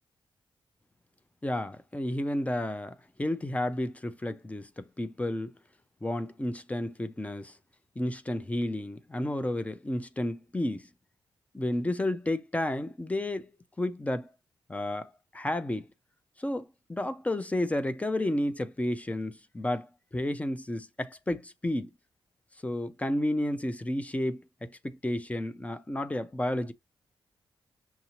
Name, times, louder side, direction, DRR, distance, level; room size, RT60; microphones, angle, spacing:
voice 1, 1.4-5.6 6.0-7.5 8.0-10.9 11.5-13.5 13.8-14.3 14.7-15.9 16.4-21.9 22.6-26.7, left 1 dB, 15° left, 0.6 m, -31 dB
5.8 x 2.7 x 3.0 m
cardioid pair, 90°, 9 cm